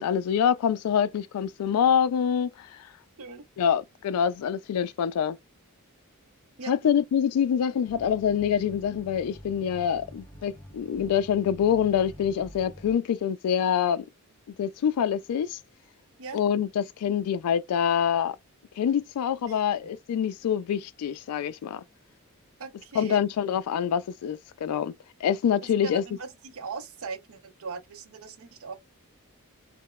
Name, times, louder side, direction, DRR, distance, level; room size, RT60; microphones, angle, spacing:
voice 1, 0.0-2.7 3.6-5.4 6.7-14.0 14.6-15.6 16.3-18.4 18.8-21.8 23.0-24.9 25.2-26.0, left 8 dB, 85° left, 0.3 m, -25 dB
sound 1, 7.8-12.9, equal, 15° left, 0.6 m, -47 dB
voice 2, 19.4-19.9 22.6-23.3 25.6-28.7, right 4 dB, 70° right, 0.6 m, -40 dB
2.9 x 2.1 x 2.2 m
head